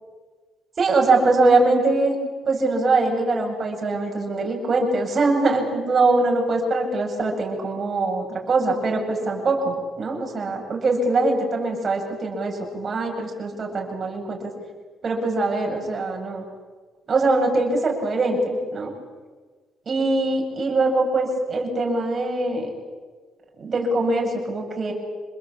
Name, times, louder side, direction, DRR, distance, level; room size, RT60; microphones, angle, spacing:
voice 1, 0.8-2.2 2.5-14.5 15.0-16.4 17.1-18.9 19.9-22.7 23.6-24.9, right 2 dB, 45° right, 1 dB, 7.8 m, -22 dB
28.0 x 21.0 x 8.8 m, 1.4 s
cardioid pair, 90°, 0 cm